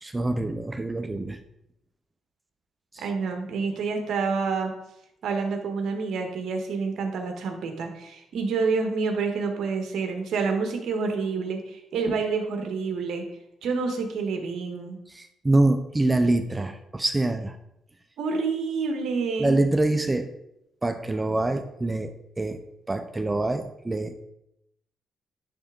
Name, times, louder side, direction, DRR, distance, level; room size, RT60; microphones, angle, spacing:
voice 1, 0.0-1.4 2.9-3.0 15.1-17.6 19.4-20.3 20.8-22.6 22.9-24.3, right 2 dB, 20° right, 8 dB, 0.5 m, -25 dB
voice 2, 3.0-4.7 5.2-13.2 13.6-15.0 18.2-19.6, right 4 dB, 70° right, 4 dB, 1.3 m, -28 dB
10.0 x 3.4 x 3.8 m, 0.82 s
cardioid pair, 90°, 0 cm